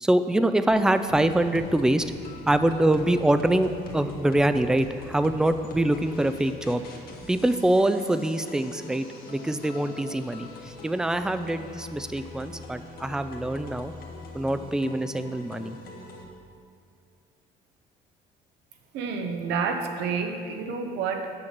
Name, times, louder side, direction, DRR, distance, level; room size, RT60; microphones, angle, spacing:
voice 1, 0.0-2.0 2.5-6.8 7.3-10.5 10.8-13.9 14.3-15.8, right 1 dB, 5° right, 10 dB, 0.3 m, -24 dB
sound 1, 0.7-16.2, left 2 dB, 60° left, 1.5 m, -43 dB
voice 2, 18.9-21.3, right 5 dB, 85° right, 5 dB, 0.9 m, -29 dB
6.5 x 5.9 x 7.4 m, 2.3 s
cardioid pair, 110°, 17 cm